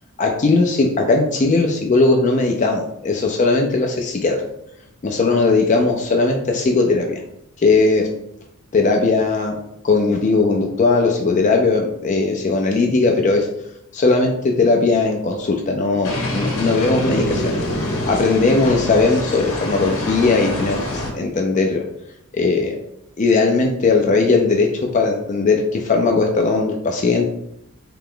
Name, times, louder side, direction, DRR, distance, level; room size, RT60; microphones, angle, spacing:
voice 1, 0.2-4.4 5.0-7.2 7.6-8.1 8.7-9.6 9.8-13.5 13.9-17.6 18.1-21.8 22.3-22.8 23.2-24.7 24.9-27.3, left 3 dB, 35° left, 2 dB, 0.4 m, -18 dB
sound 1, 16.0-21.1, left 1 dB, 65° left, 0.9 m, -25 dB
3.3 x 2.9 x 3.7 m, 0.78 s
head